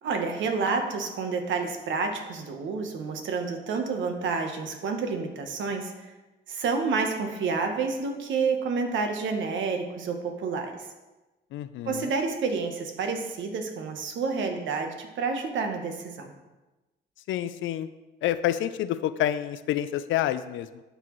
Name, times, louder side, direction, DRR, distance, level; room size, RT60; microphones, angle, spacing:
voice 1, 0.0-6.1 6.5-10.9 11.9-16.3, right 4 dB, 75° right, 5 dB, 1.0 m, -29 dB
voice 2, 11.5-12.1 17.3-17.9 18.2-20.8, left 12 dB, 75° left, 14 dB, 0.4 m, -28 dB
12.0 x 4.0 x 3.1 m, 1.1 s
cardioid pair, 90°, 20 cm